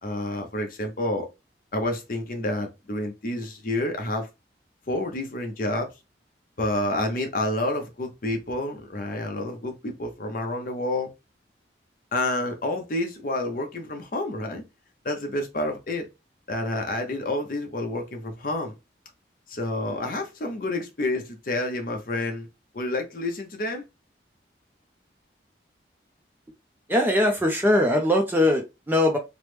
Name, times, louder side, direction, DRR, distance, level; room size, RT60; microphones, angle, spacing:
voice 1, 0.0-1.3 1.7-4.3 4.9-5.9 6.6-11.1 12.1-14.6 15.0-16.1 16.5-18.7 19.5-22.5 22.7-23.8, left 1 dB, 50° left, 0.7 m, -29 dB
voice 2, 26.9-29.2, left 1 dB, 10° right, 0.4 m, -21 dB
3.0 x 2.0 x 3.1 m
head